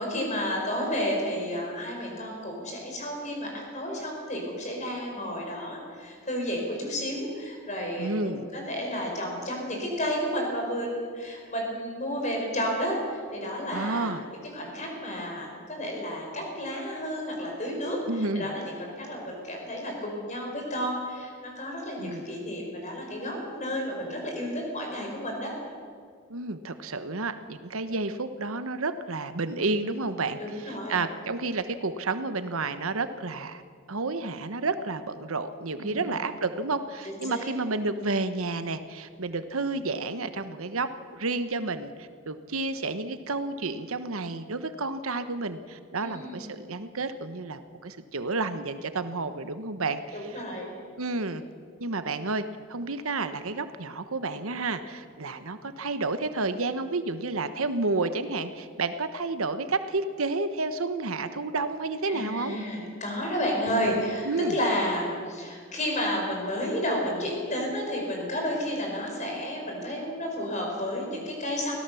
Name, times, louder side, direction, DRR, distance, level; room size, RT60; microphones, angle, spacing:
voice 1, 0.0-14.1 14.5-25.5 30.4-31.0 35.8-36.2 37.0-37.5 46.0-46.5 50.1-50.7 62.1-71.7, equal, 35° left, 0 dB, 5.5 m, -31 dB
voice 2, 8.0-8.4 13.7-14.2 18.1-18.5 22.0-22.2 26.3-33.6 33.9-50.4 51.0-51.4 51.8-52.4 52.7-62.6 64.2-64.6, right 3 dB, 80° right, 11 dB, 1.0 m, -31 dB
24.0 x 17.0 x 7.0 m, 2.1 s
head